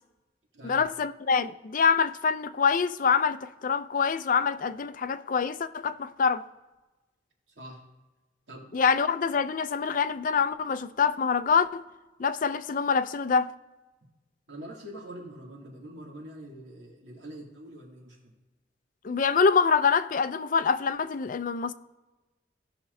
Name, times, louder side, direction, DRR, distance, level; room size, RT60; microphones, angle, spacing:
voice 1, 0.6-6.4 8.7-11.8 12.2-13.5 19.0-21.7, left 5 dB, 50° left, 0.4 m, -25 dB
voice 2, 8.5-8.9 14.5-18.3, right 1 dB, 85° right, 2.5 m, -44 dB
16.5 x 5.9 x 2.7 m
head